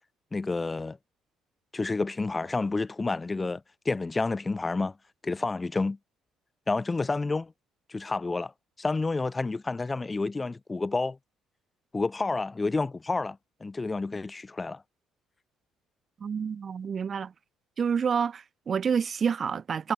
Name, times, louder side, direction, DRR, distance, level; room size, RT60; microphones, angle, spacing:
voice 1, 0.3-1.0 1.7-4.9 5.2-6.0 6.7-7.5 7.9-8.5 8.8-11.2 11.9-14.8, left 3 dB, 20° left, 2.7 m, -29 dB
voice 2, 16.2-17.3 17.8-19.9, right 6 dB, 40° right, 3.9 m, -28 dB
cardioid pair, 100°, 0 cm